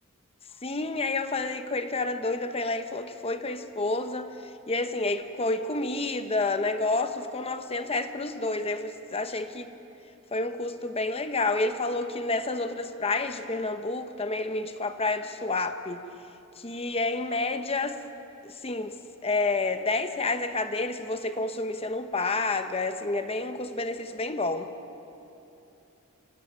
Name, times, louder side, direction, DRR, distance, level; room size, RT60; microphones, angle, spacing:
voice 1, 0.6-4.3 4.7-9.7 10.3-16.0 16.6-18.0 18.4-18.9 19.2-24.7, left 3 dB, 25° left, 9 dB, 0.9 m, -29 dB
26.5 x 16.0 x 8.7 m, 2.9 s
head